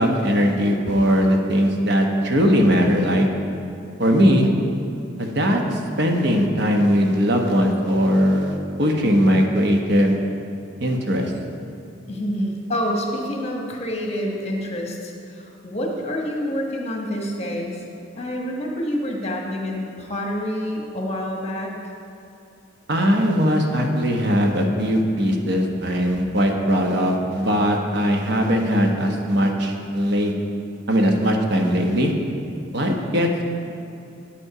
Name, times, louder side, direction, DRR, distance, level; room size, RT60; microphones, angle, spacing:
voice 1, 0.0-3.3 4.0-4.5 5.2-10.2 10.8-11.3 22.9-30.3 30.9-32.1 32.7-33.4, equal, 60° right, 2 dB, 1.0 m, -20 dB
voice 2, 12.1-17.8 18.2-21.8, equal, 35° left, 0 dB, 1.3 m, -27 dB
8.8 x 8.2 x 4.9 m, 2.7 s
head